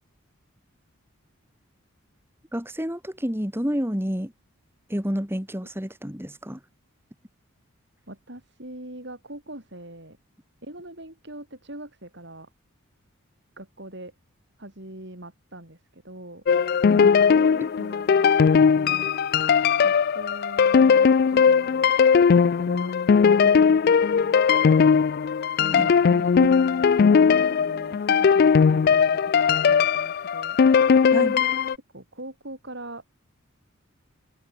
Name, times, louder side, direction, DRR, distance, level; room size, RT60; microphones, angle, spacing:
voice 1, 2.5-4.3 4.9-6.6 16.9-17.1 17.6-17.7 25.7-25.9 26.4-26.5 31.1-31.4, equal, 10° right, 3.1 m, -29 dB
voice 2, 8.1-10.2 10.6-12.5 13.6-14.1 14.6-16.4 17.3-19.1 19.8-21.9 22.4-22.9 23.3-25.1 25.6-26.3 27.3-30.6 31.9-33.0, right 1 dB, 55° right, 6.4 m, -42 dB
sound 1, 16.5-31.8, left 6 dB, 45° left, 0.3 m, -19 dB
head